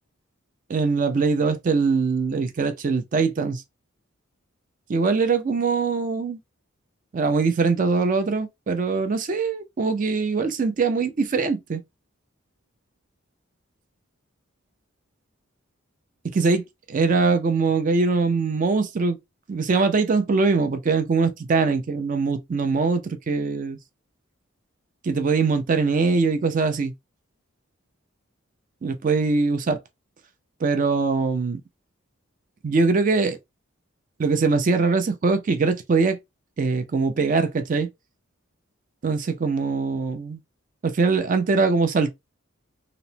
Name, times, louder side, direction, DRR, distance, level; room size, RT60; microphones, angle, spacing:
voice 1, 0.7-3.6 4.9-6.4 7.1-11.8 16.3-19.2 19.5-23.8 25.0-26.9 28.8-29.8 30.6-31.6 32.6-33.4 34.2-36.2 36.6-37.9 39.0-40.4 40.8-42.1, right 4 dB, 40° right, 0.4 m, -22 dB
2.9 x 2.0 x 2.7 m
head